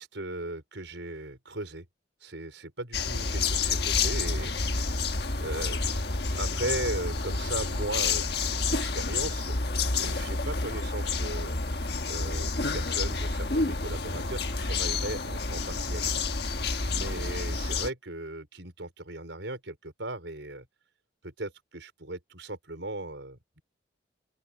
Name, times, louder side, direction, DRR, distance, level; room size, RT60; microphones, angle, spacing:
voice 1, 0.0-1.8 2.2-6.0 6.3-9.6 9.9-11.6 12.1-16.1 16.9-20.7 21.2-23.6, right 2 dB, 75° right, 5.2 m, -38 dB
sound 1, 2.9-17.9, left 4 dB, 55° left, 1.5 m, -29 dB
open air
head